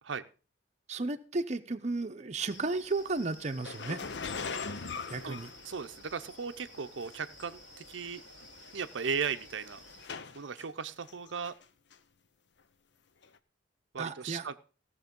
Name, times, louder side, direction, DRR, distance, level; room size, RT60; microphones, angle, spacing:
voice 1, 0.9-4.0 5.1-5.5 14.0-14.5, right 3 dB, 40° right, 7 dB, 0.7 m, -34 dB
sound 1, 2.5-10.1, left 1 dB, 85° left, 5.2 m, -53 dB
sound 2, 3.6-6.2 7.1-7.2 8.0-8.1 8.4-8.7 9.3-10.7 11.1-11.6 11.9-12.0 13.2-13.3, left 5 dB, 65° left, 0.7 m, -40 dB
voice 2, 5.6-8.2 8.7-9.8 10.3-11.6 13.9-14.5, right 6 dB, 75° right, 9 dB, 0.6 m, -36 dB
16.0 x 6.7 x 5.3 m, 0.36 s
head